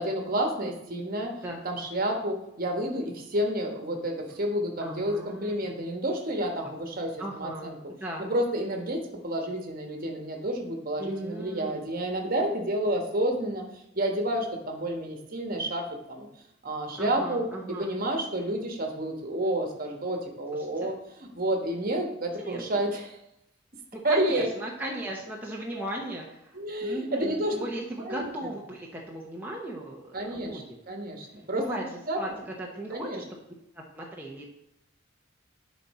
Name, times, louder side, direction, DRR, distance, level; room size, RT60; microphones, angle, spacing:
voice 1, 0.0-1.4 1.6-7.7 8.2-13.6 13.9-16.3 16.6-17.5 17.8-20.9 21.3-23.2 24.0-24.5 25.7-25.8 26.5-27.5 28.0-28.3 30.1-31.6 32.1-32.2 32.9-33.2, right 1 dB, 45° right, 3 dB, 1.3 m, -30 dB
voice 2, 4.8-5.6 6.6-6.7 7.2-7.7 8.0-8.3 11.0-11.8 17.0-17.9 20.5-20.9 22.4-22.9 23.9-30.8 31.6-33.3 33.7-34.4, right 1 dB, 10° right, -2 dB, 0.9 m, -37 dB
10.5 x 4.2 x 4.2 m, 0.81 s
head